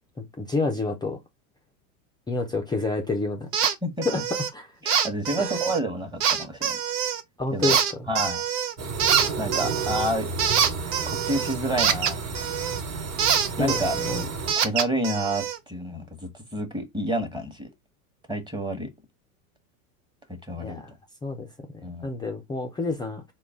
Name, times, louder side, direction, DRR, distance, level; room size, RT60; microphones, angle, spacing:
voice 1, 0.2-1.2 2.3-3.7 4.0-4.2 4.5-4.7 5.4-5.6 7.4-7.8 13.6-14.3 20.6-20.9 21.2-21.5 22.0-23.3, left 3 dB, 10° left, 0.4 m, -29 dB
sound 1, 3.5-3.7 4.0-4.5 4.9-5.8 6.2-7.2 7.6-8.7 9.0-12.8 13.2-15.6, right 8 dB, 85° right, 0.8 m, -25 dB
voice 2, 3.8-4.2 4.8-6.8 7.5-7.8 8.1-8.4 9.4-10.3 10.8-12.4 13.6-13.9 14.5-17.7 18.3-18.9 20.4-20.8 21.8-22.1, right 1 dB, 10° right, 1.0 m, -29 dB
sound 2, 8.8-14.5, right 4 dB, 40° right, 1.2 m, -32 dB
3.8 x 2.3 x 3.5 m
hypercardioid pair, 105°, 45 cm